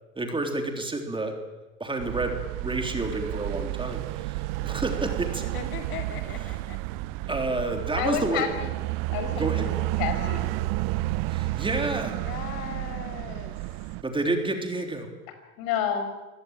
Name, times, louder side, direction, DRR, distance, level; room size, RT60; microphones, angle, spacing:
voice 1, 0.2-1.3 1.8-5.4 7.3-8.5 9.3-9.7 11.3-12.2 14.0-15.1, right 2 dB, 10° right, 4 dB, 3.5 m, -29 dB
sound 1, 2.0-14.0, right 18 dB, 50° right, 0.9 m, -31 dB
voice 2, 5.4-6.8 12.2-13.6, left 8 dB, 80° left, 6 dB, 2.8 m, -39 dB
voice 3, 8.0-8.5 9.1-9.5 10.0-10.6 15.6-16.1, left 9 dB, 55° left, 7 dB, 5.6 m, -28 dB
25.5 x 17.0 x 9.0 m, 1.1 s
hypercardioid pair, 110°, 44 cm